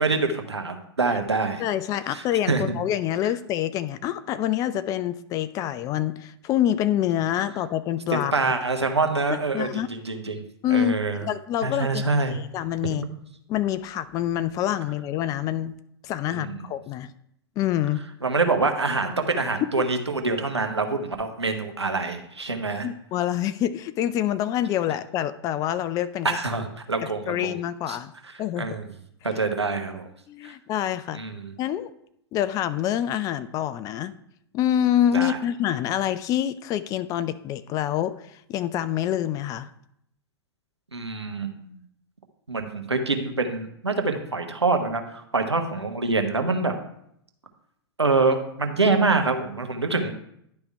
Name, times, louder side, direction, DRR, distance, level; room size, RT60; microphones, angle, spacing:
voice 1, 0.0-1.6 2.1-2.6 8.1-10.4 10.7-11.2 11.6-12.4 12.9-13.1 16.3-16.6 18.2-22.9 26.2-27.5 27.9-28.0 28.6-28.8 29.2-30.1 31.1-31.5 35.1-35.4 40.9-41.8 42.5-46.8 48.0-50.1, right 3 dB, 90° right, 5 dB, 1.0 m, -25 dB
voice 2, 1.6-8.3 9.5-9.9 10.6-12.0 12.3-13.0 13.5-15.7 16.0-17.1 17.6-18.0 22.8-26.4 27.0-28.1 28.4-28.8 30.3-31.2 31.6-31.9 32.3-34.1 34.5-39.7, left 11 dB, 25° left, 14 dB, 0.3 m, -26 dB
10.5 x 3.5 x 4.6 m, 0.74 s
figure-of-eight pair, 105°, 14 cm